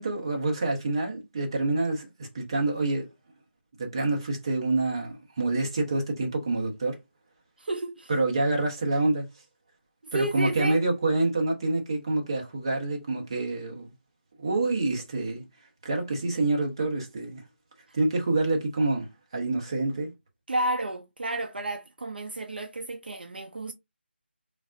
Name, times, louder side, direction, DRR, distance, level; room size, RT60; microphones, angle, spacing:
voice 1, 0.0-3.1 3.8-7.0 8.1-9.3 10.1-13.9 14.4-15.4 15.8-17.4 17.9-19.1 19.3-20.1, right 2 dB, 25° right, 0.7 m, -27 dB
voice 2, 7.6-8.1 10.1-10.8 20.5-23.7, right 2 dB, 55° right, 0.4 m, -31 dB
3.3 x 2.4 x 2.5 m
figure-of-eight pair, 175°, 6 cm